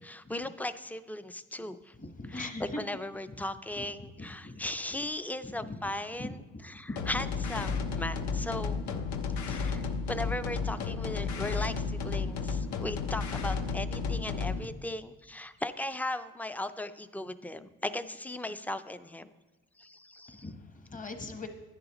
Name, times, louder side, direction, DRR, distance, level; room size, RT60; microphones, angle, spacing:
voice 1, 0.0-1.9 2.3-2.5 2.8-6.4 6.6-8.8 9.5-19.3 19.8-20.4, left 1 dB, 5° left, 12 dB, 0.3 m, -37 dB
voice 2, 1.9-2.8 3.3-3.4 3.8-4.7 5.4-5.9 6.2-7.1 8.9-9.0 20.3-21.5, left 2 dB, 25° left, 6 dB, 1.0 m, -41 dB
sound 1, 7.0-14.7, left 5 dB, 70° left, 0.8 m, -33 dB
10.5 x 9.5 x 3.0 m, 1.2 s
cardioid pair, 90°, 30 cm